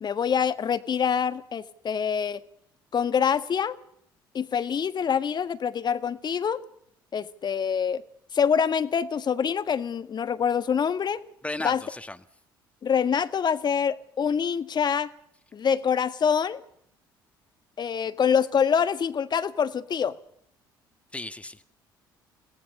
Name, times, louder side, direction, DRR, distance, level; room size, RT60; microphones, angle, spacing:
voice 1, 0.0-2.4 2.9-3.8 4.3-6.6 7.1-8.0 8.3-11.2 11.6-11.8 12.8-15.1 15.5-16.6 17.8-20.2, left 7 dB, 40° left, 1.5 m, -25 dB
voice 2, 11.4-12.2 21.1-21.7, left 2 dB, 10° left, 1.7 m, -35 dB
30.0 x 17.5 x 5.6 m
figure-of-eight pair, 50°, 11 cm